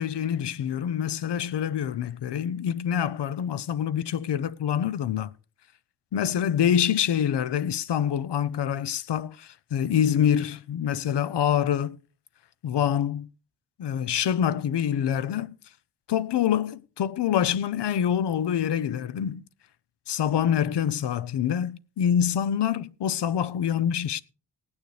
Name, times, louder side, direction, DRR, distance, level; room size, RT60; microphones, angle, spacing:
voice 1, 0.0-5.3 6.1-12.0 12.6-13.3 13.8-15.6 16.1-19.4 20.1-24.2, left 9 dB, 70° left, 0.7 m, -26 dB
18.0 x 9.3 x 3.2 m
wide cardioid pair, 125°, 42 cm